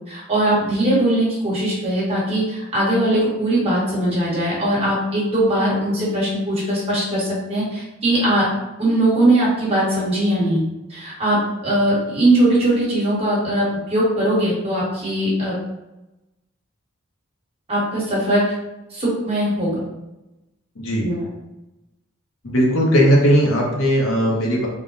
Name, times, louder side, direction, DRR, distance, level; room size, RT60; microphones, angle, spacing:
voice 1, 0.1-8.4 8.8-10.6 10.9-15.5 17.7-18.4 18.9-19.8 21.0-21.3, right 1 dB, 30° right, -7 dB, 1.4 m, -20 dB
voice 2, 22.4-24.7, equal, 75° left, -3 dB, 1.0 m, -17 dB
3.5 x 2.2 x 3.9 m, 0.98 s
head